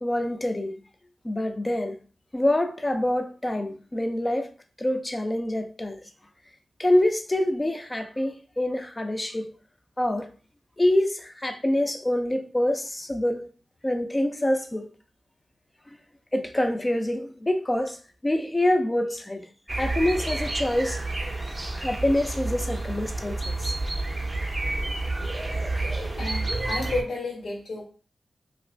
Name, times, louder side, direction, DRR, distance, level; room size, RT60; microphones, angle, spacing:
voice 1, 0.0-0.8 1.2-2.0 2.3-4.5 4.8-6.0 6.8-9.5 10.0-10.3 10.8-13.5 13.8-14.9 16.3-19.5 19.8-21.0 21.7-23.7, left 1 dB, 20° left, 0.5 m, -26 dB
sound 1, 19.7-27.0, right 2 dB, 25° right, 0.6 m, -29 dB
voice 2, 26.2-27.8, left 2 dB, 85° left, 1.4 m, -31 dB
2.8 x 2.6 x 3.2 m
wide cardioid pair, 80°, 0 cm